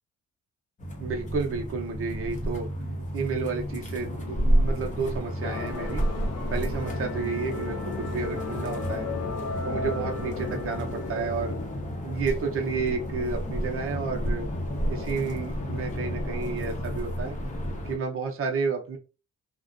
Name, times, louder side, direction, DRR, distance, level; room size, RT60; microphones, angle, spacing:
sound 1, 0.8-18.0, equal, 25° left, 0.7 m, -31 dB
voice 1, 1.0-2.7 3.1-6.0 6.5-9.1 9.6-11.6 12.0-14.5 14.9-17.4 17.8-19.0, right 5 dB, 45° right, 2 dB, 0.7 m, -31 dB
sound 2, 5.4-12.0, left 5 dB, 60° left, 0.5 m, -37 dB
2.4 x 2.1 x 2.4 m, 0.32 s
cardioid pair, 90°, 30 cm